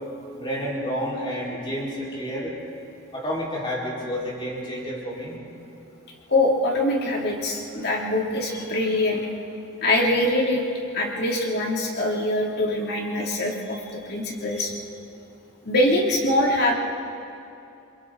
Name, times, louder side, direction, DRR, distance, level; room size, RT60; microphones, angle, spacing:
voice 1, 0.4-2.5 3.1-5.4, equal, 25° left, -5 dB, 4.8 m, -30 dB
voice 2, 6.3-9.2 9.8-10.6 10.9-14.7 15.6-16.7, left 1 dB, 50° left, -1 dB, 2.9 m, -23 dB
29.0 x 22.5 x 4.0 m, 2.7 s
head